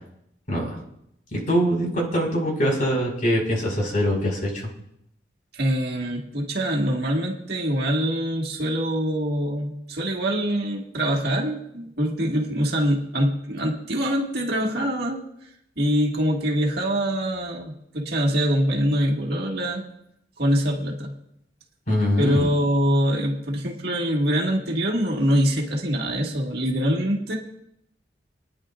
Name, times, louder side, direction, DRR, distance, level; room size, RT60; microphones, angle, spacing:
voice 1, 1.3-4.5 21.9-22.5, equal, 50° left, -1 dB, 5.0 m, -23 dB
voice 2, 5.5-15.2 15.8-19.8 20.4-21.1 22.2-27.4, equal, 60° right, -1 dB, 1.9 m, -24 dB
27.0 x 10.0 x 2.5 m, 0.77 s
head